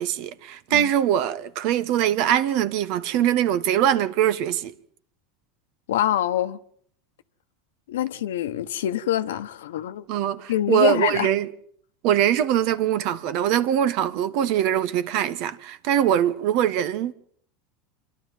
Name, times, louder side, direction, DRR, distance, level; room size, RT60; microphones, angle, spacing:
voice 1, 0.0-4.7 10.1-11.5 12.0-17.1, right 10 dB, 60° right, 1.4 m, -22 dB
voice 2, 5.9-6.6 7.9-10.0 10.5-11.3, left 12 dB, 85° left, 1.1 m, -25 dB
26.0 x 12.0 x 9.3 m
hypercardioid pair, 105°, 0 cm